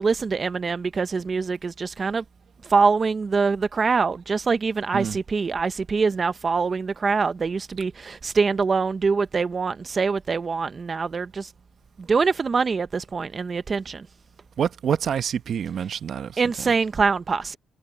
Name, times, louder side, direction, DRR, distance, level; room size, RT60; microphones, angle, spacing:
voice 1, 0.0-2.2 2.6-11.5 12.1-14.0 16.4-17.6, right 4 dB, 35° right, 0.7 m, -24 dB
voice 2, 14.6-16.7, right 8 dB, 60° right, 1.0 m, -27 dB
cardioid pair, 90°, 0 cm